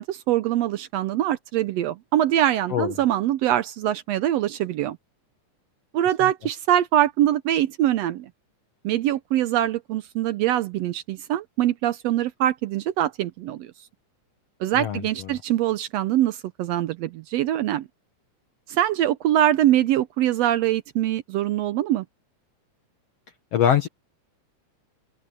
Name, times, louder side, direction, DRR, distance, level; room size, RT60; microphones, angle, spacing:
voice 1, 0.0-5.0 5.9-8.3 8.8-13.7 14.6-17.9 18.7-22.0, right 12 dB, 75° right, 1.5 m, -23 dB
voice 2, 14.8-15.4 23.5-23.9, left 9 dB, 60° left, 2.0 m, -23 dB
open air
omnidirectional pair, 3.6 m